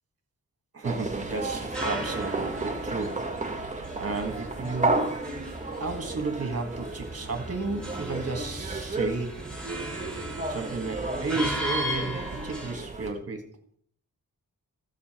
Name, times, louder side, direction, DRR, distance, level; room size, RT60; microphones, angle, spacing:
voice 1, 0.7-3.6 4.0-5.2 5.8-9.4 10.5-13.5, right 3 dB, 40° right, 4 dB, 1.8 m, -33 dB
sound 1, 0.8-13.1, right 2 dB, 20° right, 1.6 m, -33 dB
sound 2, 1.4-12.7, equal, ahead, 2.5 m, -38 dB
14.0 x 7.3 x 4.4 m, 0.62 s
wide cardioid pair, 130°, 36 cm